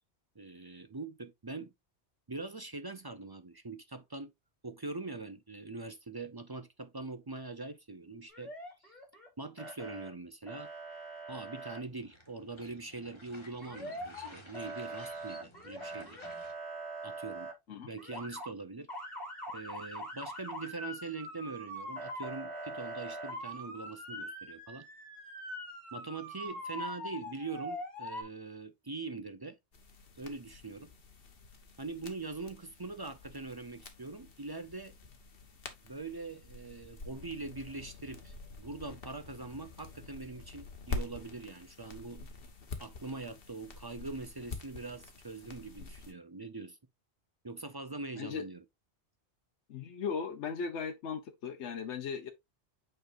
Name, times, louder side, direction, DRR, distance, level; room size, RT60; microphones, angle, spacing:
voice 1, 0.4-1.7 2.3-4.3 4.6-8.5 8.8-8.9 9.4-10.7 11.3-16.2 17.0-17.5 17.8-18.9 19.5-24.9 25.9-29.6 30.2-30.9 31.8-35.0 35.8-42.2 42.8-46.8 47.4-48.6, right 3 dB, 30° right, 0.4 m, -43 dB
Motor vehicle (road) / Siren, 8.3-9.3 9.6-10.1 10.5-11.8 13.6-14.3 14.5-17.5 18.0-18.5 18.9-28.2, right 1 dB, 40° left, 3.7 m, -43 dB
sound 1, 11.8-16.5, left 1 dB, 25° left, 1.7 m, -55 dB
sound 2, 29.7-46.1, left 3 dB, 55° left, 1.4 m, -47 dB
voice 2, 49.7-52.3, left 6 dB, 85° left, 1.1 m, -37 dB
8.2 x 4.5 x 2.5 m
omnidirectional pair, 1.2 m